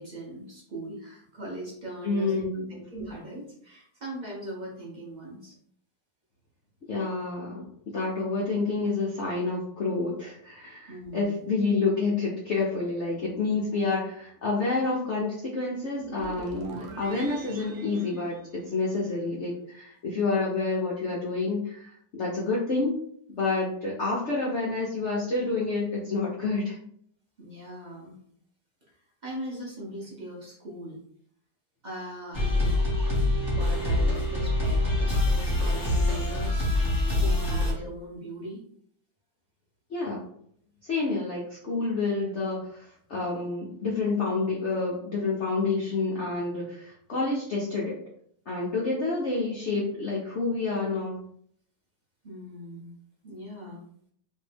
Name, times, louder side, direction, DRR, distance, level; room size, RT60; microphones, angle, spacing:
voice 1, 0.0-5.6 10.9-11.4 27.4-28.2 29.2-31.0 31.8-32.8 33.2-38.6 52.2-52.9 53.2-53.8, right 1 dB, 45° right, -4 dB, 0.6 m, -40 dB
voice 2, 2.0-2.8 6.9-23.0 23.3-26.8 39.9-40.2 40.8-48.0 48.5-51.2, left 3 dB, 80° left, -4 dB, 0.6 m, -28 dB
sound 1, 16.0-19.2, right 4 dB, 75° right, 0.8 m, -44 dB
sound 2, 32.3-37.7, left 2 dB, 15° left, 0.9 m, -25 dB
3.2 x 2.6 x 3.4 m, 0.65 s
omnidirectional pair, 2.2 m